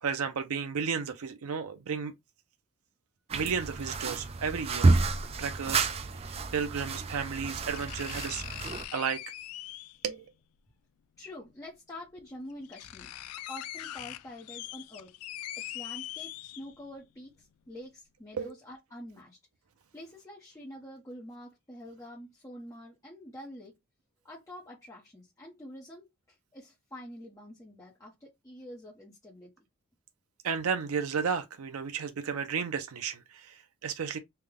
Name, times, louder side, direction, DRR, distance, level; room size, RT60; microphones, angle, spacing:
voice 1, 0.0-2.1 3.3-4.9 5.4-5.9 6.1-8.6 8.9-9.2 10.0-10.2 18.3-18.5 30.4-34.2, right 6 dB, 85° right, 0.5 m, -33 dB
sound 1, 3.3-8.8, right 3 dB, 30° right, 0.3 m, -30 dB
sound 2, 5.3-5.4 6.8-6.9 7.7-10.1 11.4-11.5 12.2-12.3 12.5-17.0 17.4-17.5, left 13 dB, 85° left, 0.3 m, -42 dB
voice 2, 11.2-13.1 13.5-15.2 15.6-19.4 19.9-23.8 24.2-29.5, left 1 dB, 15° left, 0.7 m, -46 dB
3.4 x 2.1 x 3.5 m
head